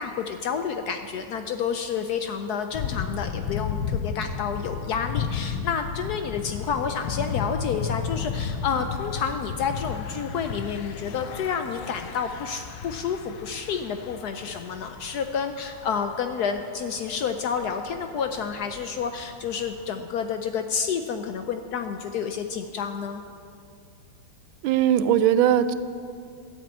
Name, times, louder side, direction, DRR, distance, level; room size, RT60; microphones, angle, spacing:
voice 1, 0.0-23.2, left 6 dB, 70° left, 7 dB, 0.9 m, -29 dB
Thunder / Bicycle, 2.7-19.9, left 6 dB, 90° left, 1.5 m, -34 dB
voice 2, 24.6-25.7, right 10 dB, 90° right, 13 dB, 1.4 m, -19 dB
12.5 x 7.3 x 8.3 m, 2.4 s
omnidirectional pair, 2.1 m